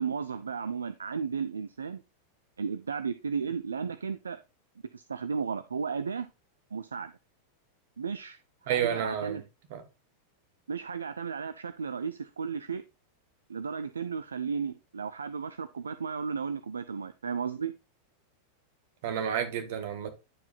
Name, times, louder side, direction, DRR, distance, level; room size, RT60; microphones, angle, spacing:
voice 1, 0.0-2.0 2.6-4.4 4.9-6.3 6.7-7.1 8.0-8.4 8.6-9.4 10.7-12.8 13.5-17.7, right 6 dB, 70° right, 0.3 m, -34 dB
voice 2, 8.7-9.4 9.7-9.8 19.0-20.1, right 9 dB, 50° right, 1.2 m, -30 dB
9.8 x 4.7 x 2.4 m
figure-of-eight pair, 90°, 0 cm